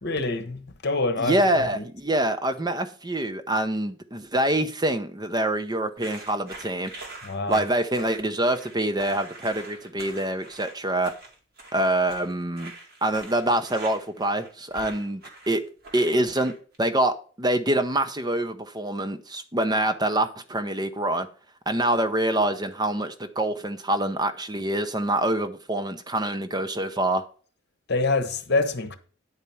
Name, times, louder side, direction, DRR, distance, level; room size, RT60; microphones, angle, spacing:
voice 1, 0.0-1.4 1.7-1.8 7.2-7.6 27.9-29.0, left 3 dB, 55° left, 1.1 m, -26 dB
voice 2, 1.2-6.9 7.5-11.1 11.7-12.7 13.0-15.6 15.9-16.5 16.8-21.3 21.7-27.2, right 1 dB, 20° right, 0.7 m, -25 dB
sound 1, 6.0-16.8, right 2 dB, 50° right, 2.4 m, -44 dB
9.7 x 4.5 x 7.0 m
head